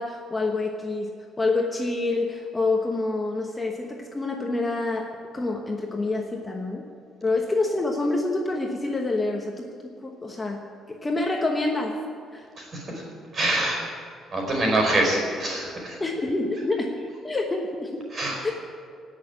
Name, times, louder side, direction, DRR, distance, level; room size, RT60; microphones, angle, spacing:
voice 1, 0.0-6.8 7.2-10.6 10.9-12.0 12.3-12.5 16.0-17.0 17.2-18.0 18.4-18.5, left 2 dB, 15° left, 1 dB, 1.1 m, -27 dB
voice 2, 12.5-13.0 13.3-13.8 14.3-16.0 18.1-18.4, right 1 dB, 35° right, 0 dB, 4.9 m, -25 dB
17.5 x 6.6 x 9.8 m, 2.1 s
cardioid pair, 140°, 0 cm